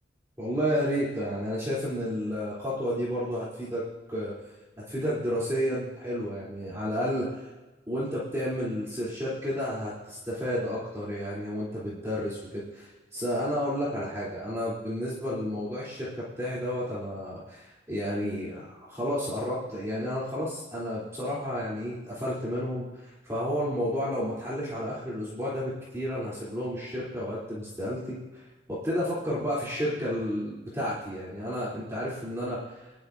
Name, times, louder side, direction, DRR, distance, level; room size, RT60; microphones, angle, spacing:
voice 1, 0.4-3.8 4.1-4.3 4.9-7.5 7.9-28.4 28.7-32.9, equal, 15° right, -8 dB, 3.0 m, -31 dB
22.0 x 11.5 x 2.6 m, 1.1 s
head